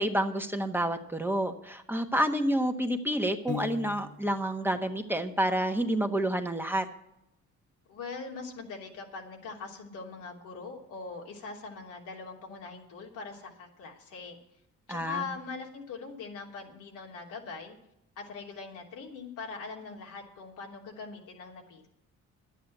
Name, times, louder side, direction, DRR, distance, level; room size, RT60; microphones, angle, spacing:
voice 1, 0.0-6.9 14.9-15.3, right 1 dB, 5° right, 5 dB, 1.3 m, -29 dB
Piano, 3.5-4.5, left 6 dB, 35° left, 1.0 m, -38 dB
voice 2, 7.9-14.4 14.9-17.7 18.2-21.9, left 4 dB, 90° left, -1 dB, 3.3 m, -41 dB
11.0 x 9.1 x 7.9 m, 0.80 s
cardioid pair, 90°, 30 cm